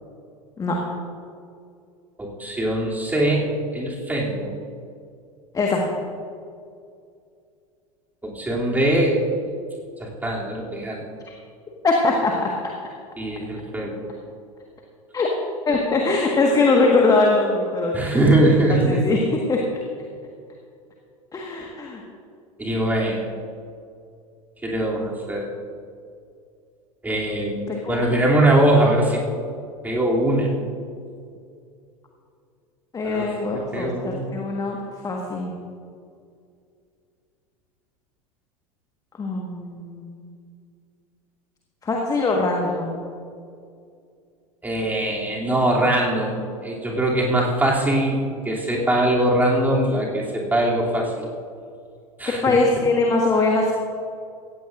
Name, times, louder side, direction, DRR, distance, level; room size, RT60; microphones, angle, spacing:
voice 1, 2.2-3.5 3.7-4.5 8.2-9.2 10.0-11.0 13.2-14.1 17.9-19.0 22.6-23.3 24.6-25.5 27.0-29.2 29.8-30.5 33.0-34.3 44.6-51.1 52.2-52.6, right 1 dB, 10° right, -3 dB, 2.9 m, -22 dB
voice 2, 11.8-12.5 15.1-15.3 15.7-18.0 18.7-19.6 21.3-22.0 27.7-28.1 32.9-34.8 35.0-35.5 39.2-40.3 41.8-43.0 52.4-53.7, left 3 dB, 20° left, 0 dB, 1.6 m, -21 dB
17.0 x 15.5 x 2.6 m, 2.4 s
figure-of-eight pair, 80°, 19 cm